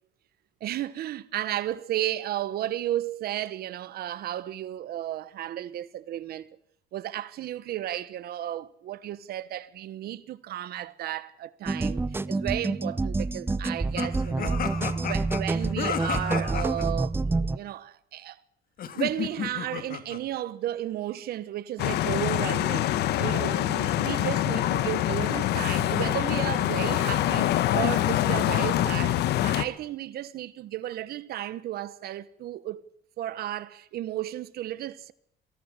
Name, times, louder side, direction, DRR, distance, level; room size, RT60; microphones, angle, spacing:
voice 1, 0.6-6.5 6.9-14.6 14.9-18.4 18.9-32.9 33.2-35.1, right 13 dB, 65° right, 1.1 m, -33 dB
sound 1, 11.7-17.6, right 3 dB, 15° right, 0.8 m, -28 dB
sound 2, 14.0-16.9 18.8-20.2, left 9 dB, 60° left, 2.5 m, -33 dB
sound 3, 21.8-29.6, left 13 dB, 75° left, 1.4 m, -25 dB
23.0 x 17.0 x 8.2 m
cardioid pair, 110°, 17 cm